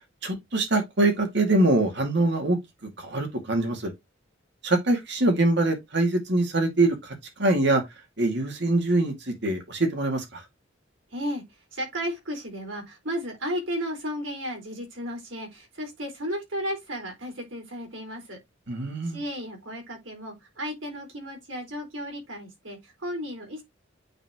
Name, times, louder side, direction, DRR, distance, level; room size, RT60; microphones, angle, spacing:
voice 1, 0.2-2.6 3.0-3.9 4.6-7.0 7.4-7.8 8.2-10.4 18.7-19.2, right 2 dB, 60° right, 2.1 m, -23 dB
voice 2, 11.1-18.4 19.0-23.6, equal, 75° right, 4.4 m, -34 dB
8.9 x 4.2 x 2.9 m
head